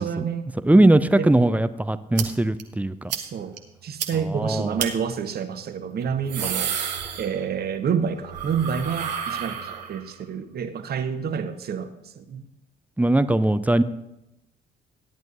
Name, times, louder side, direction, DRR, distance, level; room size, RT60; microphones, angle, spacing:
voice 1, 0.0-0.5 0.8-1.3 3.1-3.6 3.8-6.7 7.2-12.5, right 7 dB, 50° right, 9 dB, 1.1 m, -28 dB
voice 2, 0.6-3.1 4.3-4.7 13.0-13.8, right 1 dB, 5° right, 13 dB, 0.6 m, -20 dB
sound 1, 2.2-2.3 2.6-2.7 3.1-3.2 3.6-3.7 4.0-4.1 4.8-4.9 6.0-7.7 8.0-10.1, right 8 dB, 85° right, 0.9 m, -30 dB
15.5 x 10.5 x 2.6 m, 0.91 s
figure-of-eight pair, 45°, 21 cm